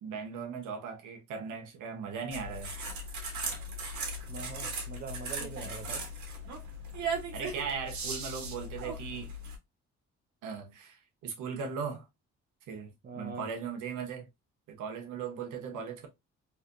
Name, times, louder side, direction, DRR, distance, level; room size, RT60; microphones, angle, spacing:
voice 1, 0.0-2.7 7.3-9.3 10.4-12.1 12.7-14.3 14.7-16.1, right 6 dB, 85° right, 1.1 m, -38 dB
sound 1, 2.3-9.6, right 2 dB, 70° right, 1.5 m, -38 dB
voice 2, 4.3-6.1 13.0-13.5 15.6-15.8, right 4 dB, 35° right, 0.7 m, -43 dB
3.3 x 3.1 x 2.6 m
cardioid pair, 90°, 30 cm